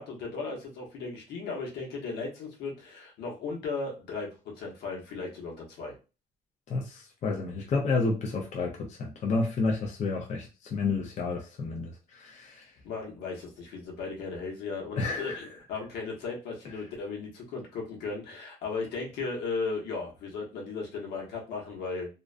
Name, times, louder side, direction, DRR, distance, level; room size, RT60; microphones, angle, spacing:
voice 1, 0.0-4.3 4.6-5.9 12.8-22.1, left 4 dB, 80° left, 1.0 m, -36 dB
voice 2, 6.7-12.7 15.0-15.4, left 3 dB, 45° left, 0.5 m, -30 dB
2.4 x 2.1 x 2.4 m
cardioid pair, 110°, 17 cm